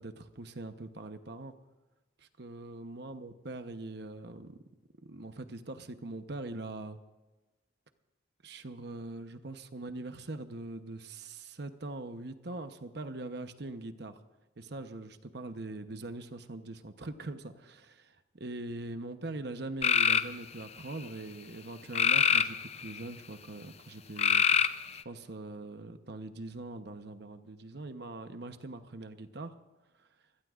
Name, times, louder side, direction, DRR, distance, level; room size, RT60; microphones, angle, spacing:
voice 1, 0.0-1.5 2.2-4.6 5.0-7.0 8.4-14.2 14.6-24.5 24.9-29.5, right 2 dB, 60° right, 8 dB, 0.9 m, -42 dB
sound 1, 19.8-20.3 21.9-23.0 24.2-25.0, left 7 dB, 35° left, 0.5 m, -25 dB
26.0 x 17.5 x 2.5 m, 1.1 s
head